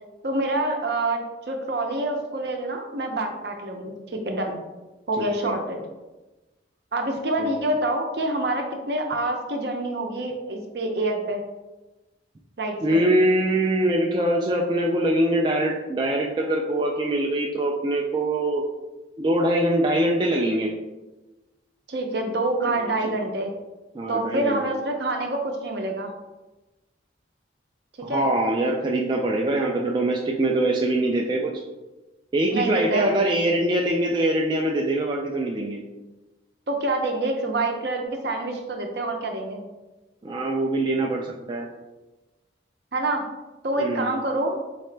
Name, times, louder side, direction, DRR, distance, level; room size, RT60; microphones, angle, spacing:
voice 1, 0.2-4.6 5.1-5.8 6.9-11.4 12.6-13.0 21.9-23.5 24.1-26.1 28.1-28.2 32.5-33.1 36.7-39.6 42.9-43.2 43.6-44.6, right 2 dB, 60° right, 3 dB, 0.7 m, -27 dB
voice 2, 12.8-18.6 19.2-20.7 22.8-23.2 23.9-24.6 28.0-31.5 32.3-35.8 40.2-41.7 43.8-44.1, right 1 dB, 25° right, 0 dB, 0.3 m, -23 dB
4.3 x 3.7 x 3.2 m, 1.1 s
head